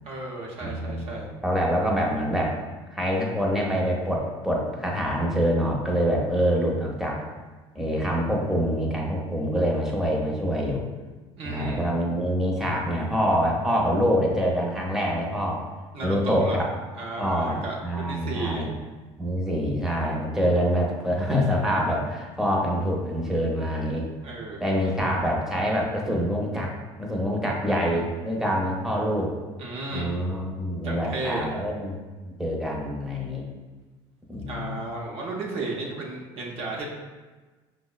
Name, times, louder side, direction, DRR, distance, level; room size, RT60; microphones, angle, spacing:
voice 1, 0.0-1.3 11.4-11.9 15.9-16.6 16.9-18.7 24.2-24.7 29.6-30.1 30.8-31.5 34.5-36.9, right 2 dB, 55° right, -2 dB, 0.6 m, -33 dB
voice 2, 0.6-2.6 2.9-7.2 7.7-10.8 11.4-15.6 16.0-16.7 17.2-18.7 19.2-24.1 24.6-26.7 27.0-29.4 29.9-32.0 32.2-33.5 34.3-34.7, equal, 5° right, -2 dB, 0.6 m, -25 dB
4.9 x 2.0 x 2.3 m, 1.3 s
supercardioid pair, 105°, 12 cm